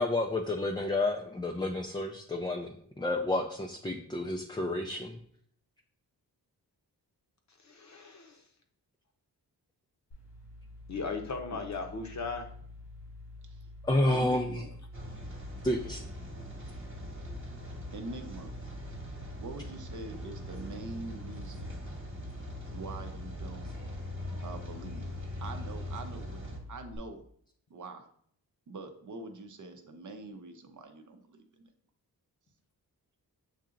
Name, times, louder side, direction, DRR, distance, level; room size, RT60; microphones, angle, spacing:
voice 1, 0.0-5.2 13.8-14.6 15.6-16.0, left 2 dB, 10° left, 2 dB, 0.3 m, -30 dB
voice 2, 7.6-8.4 10.9-12.5, left 4 dB, 45° left, 4 dB, 0.8 m, -37 dB
sound 1, 10.1-27.0, left 1 dB, 85° left, 1.7 m, -48 dB
voice 3, 14.1-14.7 17.9-18.5 19.4-21.8 22.7-23.7 24.4-26.4 26.7-27.2 27.7-28.1 28.7-31.7, right 3 dB, 50° right, 6 dB, 0.6 m, -44 dB
Rain, 14.9-26.6, left 1 dB, 30° right, 1.1 m, -42 dB
7.2 x 2.8 x 2.5 m, 0.63 s
wide cardioid pair, 80°, 39 cm